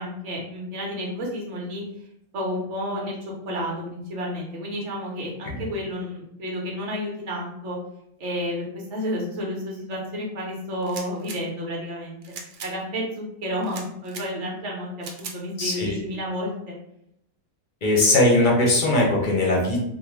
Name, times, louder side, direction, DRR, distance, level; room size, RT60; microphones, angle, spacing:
voice 1, 0.0-1.8 2.3-3.2 3.4-7.8 8.2-12.2 12.6-14.9 15.2-16.7, equal, 60° right, -2 dB, 1.2 m, -31 dB
sound 1, 10.8-11.4 12.2-12.7 13.6-14.3 15.0-15.4, right 5 dB, 75° right, 0.4 m, -38 dB
voice 2, 15.6-15.9 17.8-19.8, left 2 dB, 40° left, -2 dB, 0.8 m, -19 dB
3.7 x 2.1 x 3.1 m, 0.77 s
omnidirectional pair, 1.4 m